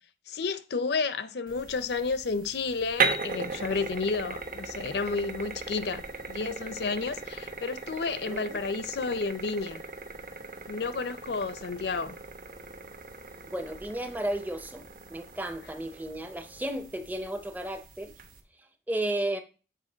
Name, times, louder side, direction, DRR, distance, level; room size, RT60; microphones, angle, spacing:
voice 1, 0.3-6.0 6.3-9.8 10.7-12.2, left 4 dB, 65° left, 0.5 m, -31 dB
sound 1, 1.5-18.4, right 4 dB, 50° right, 0.9 m, -37 dB
voice 2, 8.3-8.6 13.5-14.8 15.1-18.1 18.6-19.4, right 1 dB, 10° right, 0.6 m, -33 dB
7.4 x 4.8 x 3.8 m
head